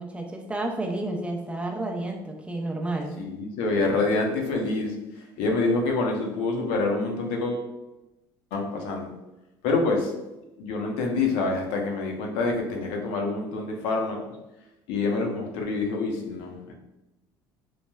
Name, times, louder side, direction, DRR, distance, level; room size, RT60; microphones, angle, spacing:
voice 1, 0.0-3.1, right 2 dB, 10° right, 1 dB, 0.5 m, -31 dB
voice 2, 3.2-7.7 8.5-9.1 9.6-10.1 10.6-14.2 14.9-16.7, left 3 dB, 75° left, 1 dB, 0.6 m, -26 dB
3.1 x 2.1 x 2.2 m, 0.99 s
supercardioid pair, 90°, 10 cm